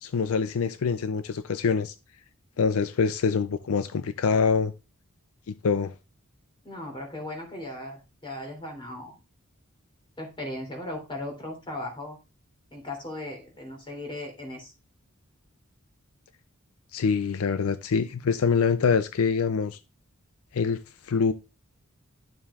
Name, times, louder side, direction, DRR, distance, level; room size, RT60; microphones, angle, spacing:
voice 1, 0.0-1.9 2.6-4.7 5.5-5.9 16.9-19.8 20.5-20.8 21.0-21.3, left 5 dB, 80° left, 0.4 m, -25 dB
voice 2, 6.6-9.1 10.2-12.2 12.7-14.7, left 1 dB, 25° left, 3.0 m, -37 dB
10.5 x 7.1 x 2.4 m
head